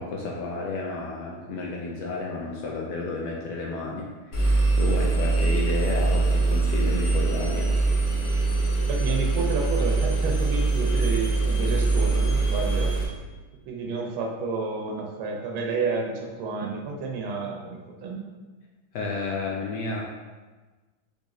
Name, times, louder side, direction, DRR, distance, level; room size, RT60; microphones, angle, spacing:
voice 1, 0.0-7.7 18.9-20.0, left 3 dB, 75° left, -2 dB, 1.0 m, -31 dB
Engine, 4.3-13.0, right 3 dB, 55° left, 1.0 m, -23 dB
voice 2, 8.9-12.9 13.7-18.2, right 4 dB, 80° right, 0 dB, 1.5 m, -30 dB
4.0 x 3.4 x 3.6 m, 1.3 s
omnidirectional pair, 2.3 m